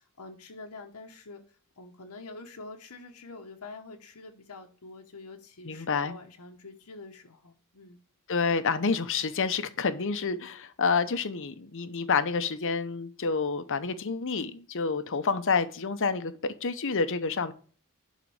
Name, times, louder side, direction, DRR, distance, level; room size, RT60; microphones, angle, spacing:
voice 1, 0.0-1.4 1.8-8.0, left 3 dB, 85° left, 1.0 m, -46 dB
voice 2, 5.6-6.1 8.3-17.5, left 5 dB, 60° left, 0.8 m, -28 dB
11.0 x 4.1 x 4.8 m
head